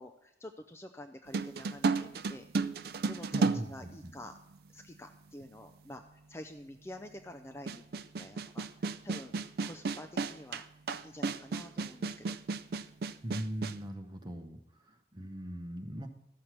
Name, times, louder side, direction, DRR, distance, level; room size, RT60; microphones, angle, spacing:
voice 1, 0.0-2.5 3.1-4.3 4.7-6.0 6.3-7.9 8.2-9.4 9.6-10.7 11.0-12.4, left 1 dB, 15° left, 6 dB, 0.4 m, -48 dB
sound 1, 1.3-4.5 5.4-5.5 7.7-13.8, right 4 dB, 60° right, 0.4 m, -33 dB
voice 2, 3.3-3.9 13.2-14.6 14.9-16.1, right 1 dB, 25° right, 5 dB, 0.9 m, -40 dB
14.0 x 6.5 x 5.9 m, 0.87 s
head